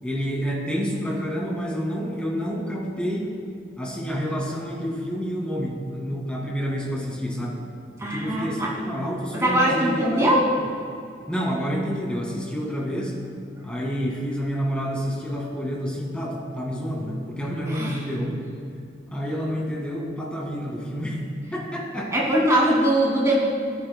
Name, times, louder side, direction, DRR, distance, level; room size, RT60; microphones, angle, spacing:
voice 1, 0.0-3.4 3.8-7.6 8.1-10.3 10.6-10.7 11.3-13.2 13.6-18.4 19.1-21.2 21.5-22.2, equal, 5° left, -2 dB, 1.9 m, -28 dB
voice 2, 8.0-8.7 9.3-10.4 17.7-18.0 22.1-23.3, right 1 dB, 15° right, -5 dB, 2.3 m, -21 dB
19.0 x 9.5 x 2.2 m, 2.4 s
head